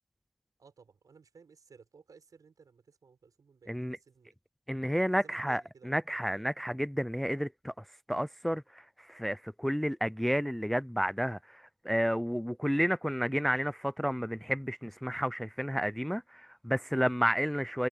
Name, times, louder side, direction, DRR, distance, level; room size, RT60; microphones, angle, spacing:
voice 1, 0.6-4.3 4.9-6.5, right 5 dB, 80° right, 6.9 m, -58 dB
voice 2, 4.7-7.7 8.1-17.9, equal, 5° left, 0.4 m, -31 dB
wide cardioid pair, 115°, 6 cm